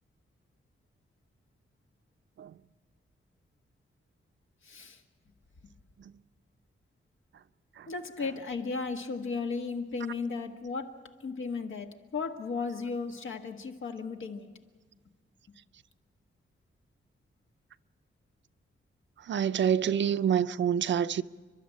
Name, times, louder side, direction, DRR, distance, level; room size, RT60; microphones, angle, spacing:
voice 1, 4.6-5.0 7.9-14.5, left 4 dB, 85° left, 1.6 m, -35 dB
voice 2, 19.3-21.2, right 8 dB, 70° right, 0.5 m, -27 dB
30.0 x 12.0 x 8.6 m
wide cardioid pair, 165°, 20 cm